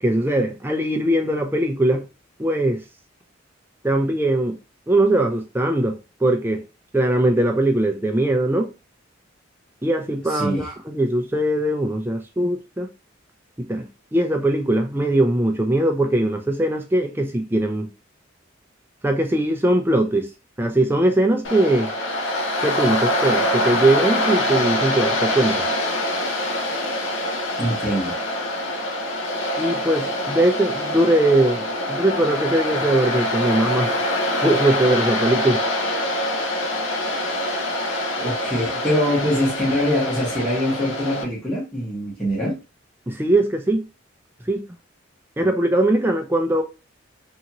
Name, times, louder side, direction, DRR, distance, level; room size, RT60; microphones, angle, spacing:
voice 1, 0.0-2.0 2.4-2.8 3.8-4.6 4.9-6.6 6.9-8.7 9.8-12.9 13.6-17.9 19.0-20.3 20.6-21.9 22.6-25.7 29.6-33.9 34.4-35.6 43.1-43.9 44.5-44.7 45.4-46.6, right 1 dB, 10° right, 0.4 m, -20 dB
voice 2, 10.3-10.7 27.6-28.1 38.2-42.6, equal, 5° left, 1.1 m, -23 dB
Waves surf, 21.4-41.2, left 1 dB, 70° left, 0.6 m, -24 dB
2.8 x 2.5 x 2.9 m
head